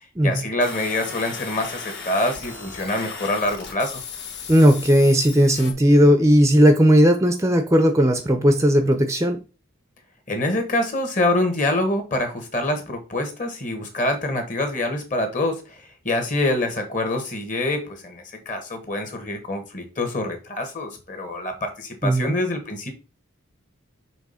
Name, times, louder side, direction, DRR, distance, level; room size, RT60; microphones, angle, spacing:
voice 1, 0.2-4.0 10.3-22.9, left 1 dB, 40° left, 1.5 m, -25 dB
sound 1, 0.6-5.7, left 5 dB, 55° left, 1.6 m, -36 dB
voice 2, 4.5-9.4 22.0-22.4, equal, 15° right, 0.6 m, -16 dB
6.1 x 3.5 x 5.5 m
head